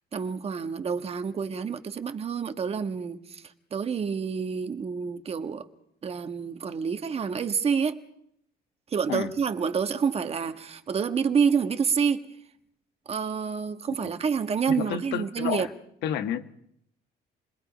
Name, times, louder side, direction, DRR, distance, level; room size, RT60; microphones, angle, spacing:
voice 1, 0.1-3.4 3.7-5.7 6.0-8.0 8.9-12.3 13.1-15.7, right 6 dB, 35° right, 1.4 m, -28 dB
voice 2, 14.7-15.7 16.0-16.5, left 9 dB, 85° left, 1.3 m, -30 dB
28.5 x 20.5 x 5.0 m
cardioid pair, 110°, 17 cm